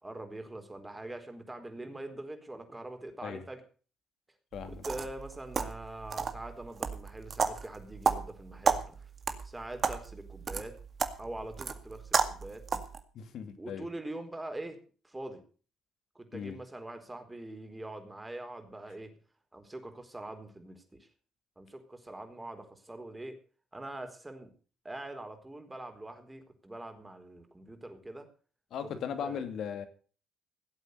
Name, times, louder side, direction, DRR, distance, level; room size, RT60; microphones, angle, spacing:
voice 1, 0.0-3.6 4.6-9.1 9.4-10.7 11.2-12.6 13.6-14.8 15.0-15.4 16.1-19.1 19.5-21.1 21.6-23.3 23.7-24.5 24.8-28.3 29.2-29.4, right 1 dB, 15° right, 6 dB, 4.3 m, -43 dB
voice 2, 4.5-4.8 13.1-13.9 16.3-16.6 28.7-29.9, left 8 dB, 65° left, 9 dB, 2.4 m, -38 dB
sound 1, 4.5-13.0, right 5 dB, 45° right, 2.0 m, -33 dB
17.0 x 8.2 x 6.7 m, 0.40 s
hypercardioid pair, 55°, 0 cm